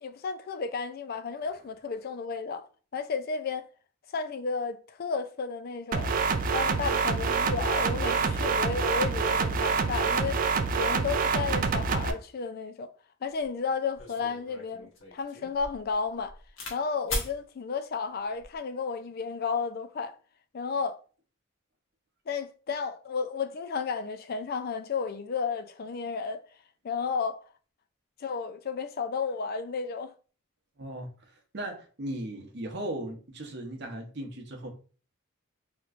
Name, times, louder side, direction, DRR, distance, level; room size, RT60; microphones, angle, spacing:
voice 1, 0.0-2.7 2.9-3.7 4.1-6.2 6.5-10.4 10.8-12.9 13.2-16.3 16.7-20.2 20.5-21.0 22.3-26.4 26.8-27.4 28.2-30.1, left 5 dB, 45° left, 0.3 m, -32 dB
sound 1, 5.9-12.1, right 5 dB, 40° right, 0.3 m, -26 dB
sound 2, 13.4-13.5 14.0-16.8 17.1-17.3 18.2-18.6, left 2 dB, 80° left, 1.2 m, -38 dB
voice 2, 30.8-34.7, right 1 dB, 55° right, 0.8 m, -37 dB
3.5 x 3.0 x 2.4 m
head